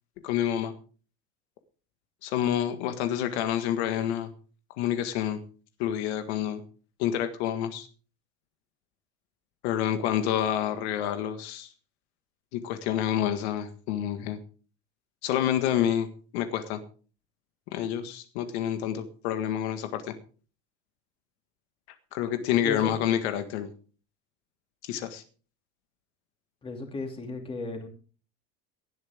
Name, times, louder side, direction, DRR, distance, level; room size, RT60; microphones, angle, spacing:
voice 1, 0.2-0.7 2.2-4.3 4.8-5.4 5.8-6.6 7.0-7.9 9.6-11.7 12.5-14.4 15.2-16.1 16.3-16.8 17.7-20.1 22.1-23.7 24.8-25.2, left 10 dB, 65° left, 8 dB, 1.8 m, -28 dB
voice 2, 26.6-27.9, left 3 dB, 15° left, 3 dB, 2.8 m, -35 dB
18.0 x 12.5 x 3.6 m, 0.39 s
cardioid pair, 170°, 35 cm